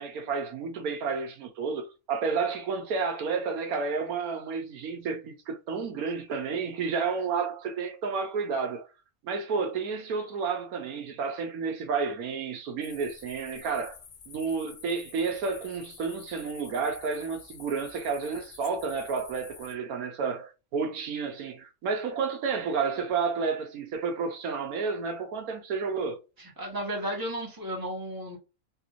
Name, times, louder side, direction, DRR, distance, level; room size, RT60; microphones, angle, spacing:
voice 1, 0.0-8.8 9.2-14.0 14.3-26.2, right 5 dB, 80° right, 1.2 m, -31 dB
sound 1, 12.8-19.8, left 6 dB, 70° left, 0.4 m, -49 dB
voice 2, 26.4-28.4, equal, 15° right, 1.1 m, -34 dB
3.4 x 2.5 x 2.9 m
omnidirectional pair, 1.5 m